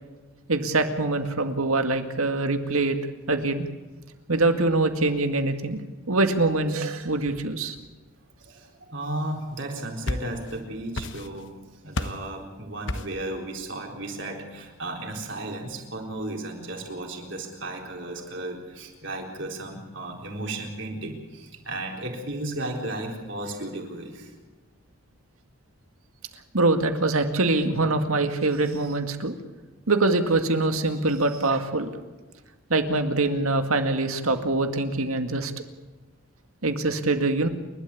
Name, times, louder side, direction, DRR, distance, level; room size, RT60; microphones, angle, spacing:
voice 1, 0.5-3.0 3.3-3.7 4.3-5.8 6.1-7.8 26.5-29.4 29.9-31.9 32.7-35.5 36.6-37.5, right 2 dB, 90° right, 7 dB, 2.0 m, -24 dB
voice 2, 8.4-11.5 11.8-24.3, right 1 dB, 55° right, 1 dB, 4.2 m, -34 dB
sound 1, 9.7-10.6 10.9-11.5 11.9-12.3 12.9-13.3, left 2 dB, 55° left, 1.2 m, -32 dB
29.0 x 12.5 x 8.5 m, 1.2 s
head